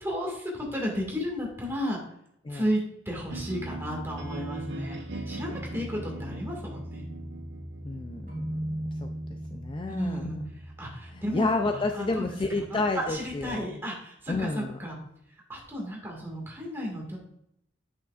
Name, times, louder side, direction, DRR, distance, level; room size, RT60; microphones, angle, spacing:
voice 1, 0.0-2.0 2.5-2.8 3.1-5.0 5.3-7.1 9.9-10.4 10.8-12.3 12.6-15.0 15.5-17.2, equal, 10° right, -2 dB, 1.8 m, -33 dB
sound 1, 3.3-13.4, right 1 dB, 65° right, 1.1 m, -40 dB
voice 2, 7.8-9.1 9.5-10.2 11.1-13.8 14.3-14.8, left 2 dB, 25° left, 5 dB, 0.3 m, -30 dB
Keyboard (musical), 8.3-10.1, right 1 dB, 40° right, 2.5 m, -36 dB
8.1 x 6.4 x 2.4 m, 0.78 s
head